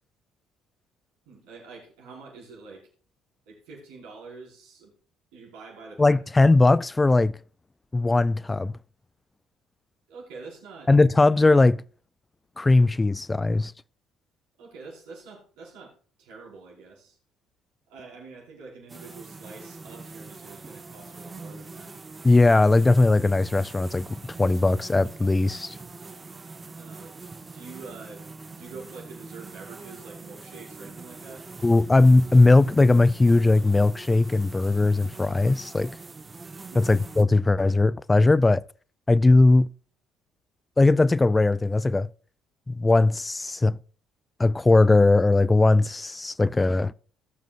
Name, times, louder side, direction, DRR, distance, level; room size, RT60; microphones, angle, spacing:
voice 1, 1.3-2.9 3.5-4.9 5.3-6.2 10.1-10.9 14.6-17.2 17.9-22.0 26.7-27.2 27.5-31.5 36.7-36.9, right 4 dB, 70° right, 5.1 m, -46 dB
voice 2, 6.0-7.3 7.9-8.7 10.9-11.8 12.6-13.7 22.2-24.1 24.4-25.8 31.6-36.0 36.8-38.6 39.1-39.7 40.8-42.1 42.7-43.8 44.4-46.9, left 2 dB, 20° left, 0.3 m, -19 dB
sound 1, 18.9-37.2, right 3 dB, 30° right, 1.1 m, -43 dB
19.0 x 7.5 x 2.5 m
hypercardioid pair, 50°, 0 cm